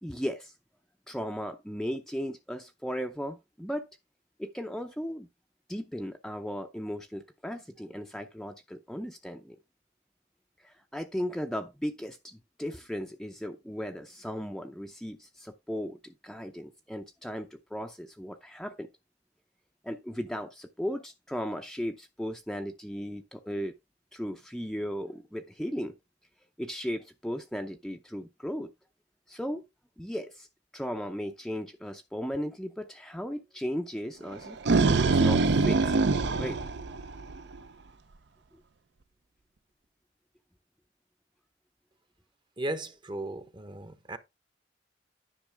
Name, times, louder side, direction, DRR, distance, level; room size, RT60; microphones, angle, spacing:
voice 1, 0.0-0.5 1.1-3.9 4.4-5.3 5.7-9.6 10.6-18.9 19.8-23.7 24.1-25.9 26.6-28.7 29.3-29.6 30.0-30.5 30.7-34.6 35.1-36.0 36.4-36.6, equal, 5° left, 0.5 m, -36 dB
sound 1, 34.3-37.6, right 3 dB, 65° right, 0.6 m, -24 dB
voice 2, 42.6-44.2, right 1 dB, 25° right, 0.9 m, -36 dB
10.0 x 6.0 x 3.4 m
head